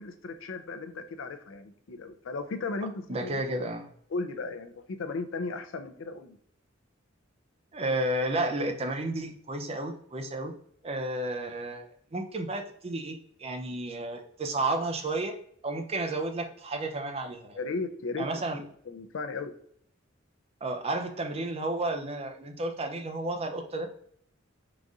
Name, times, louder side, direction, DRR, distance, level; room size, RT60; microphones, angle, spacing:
voice 1, 0.0-2.9 3.2-3.4 4.1-6.4 17.6-18.3 18.9-19.5, left 3 dB, 85° left, 9 dB, 0.5 m, -35 dB
voice 2, 3.1-3.9 7.7-10.5 10.8-15.3 15.6-17.6 18.2-18.6 20.6-23.9, right 2 dB, 30° right, 5 dB, 0.5 m, -32 dB
3.9 x 2.5 x 4.7 m, 0.64 s
head